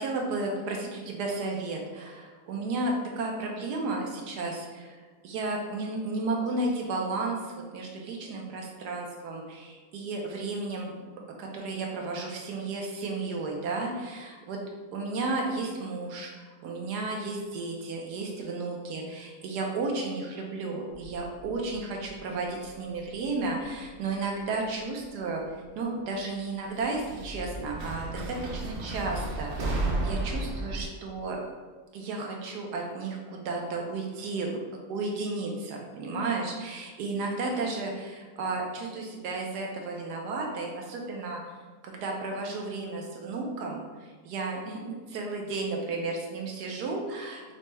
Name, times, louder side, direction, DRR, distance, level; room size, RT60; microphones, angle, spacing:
voice 1, 0.0-5.0 5.2-10.9 11.4-14.6 14.9-16.3 16.6-25.4 25.8-31.4 31.9-34.6 34.9-41.5 41.8-47.5, right 3 dB, 85° right, 0 dB, 1.3 m, -33 dB
sound 1, 20.9-23.0 23.2-23.9 25.0-25.1 26.8-30.9, right 2 dB, 55° right, 0.8 m, -33 dB
5.6 x 2.2 x 3.0 m, 1.4 s
omnidirectional pair, 1.7 m